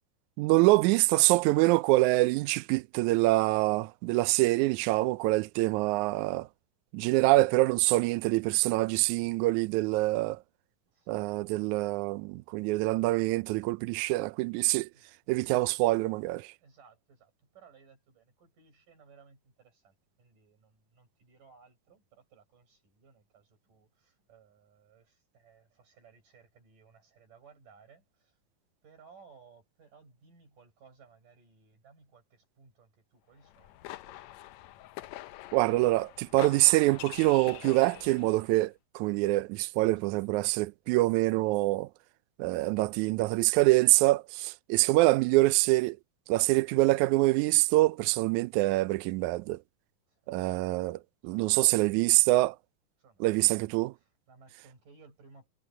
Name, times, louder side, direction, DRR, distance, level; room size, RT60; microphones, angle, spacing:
voice 1, 0.4-6.5 6.9-10.4 11.1-14.9 15.3-16.5 35.5-41.9 42.4-46.0 46.3-49.6 50.3-52.5 53.2-53.9, right 20 dB, 85° right, 1.7 m, -25 dB
voice 2, 10.9-11.4 14.9-15.2 16.6-28.4 28.8-34.8 39.9-40.6 44.8-45.4 46.5-46.6 50.1-50.4 51.2-51.7 53.0-53.3 53.9-55.5, right 5 dB, 65° right, 8.8 m, -60 dB
sound 1, 33.4-38.5, left 15 dB, 90° left, 1.5 m, -45 dB
omnidirectional pair, 4.0 m